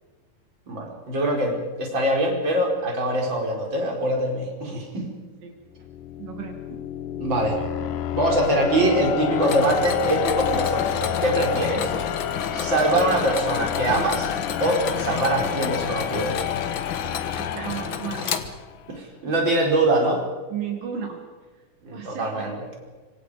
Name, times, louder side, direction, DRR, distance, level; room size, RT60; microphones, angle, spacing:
voice 1, 0.7-5.1 7.1-7.9 8.1-11.9 12.5-14.3 14.6-16.4 18.9-20.2 21.8-22.6, right 1 dB, 35° right, -1 dB, 5.4 m, -23 dB
sound 1, 5.7-18.6, left 11 dB, 70° left, 2.5 m, -29 dB
voice 2, 6.2-6.6 11.7-12.1 17.3-18.5 20.5-21.2 21.9-22.5, right 8 dB, 75° right, 2 dB, 3.9 m, -34 dB
Mechanisms, 9.4-19.0, left 7 dB, 55° left, 1.4 m, -32 dB
26.0 x 25.5 x 5.1 m, 1.4 s
omnidirectional pair, 3.9 m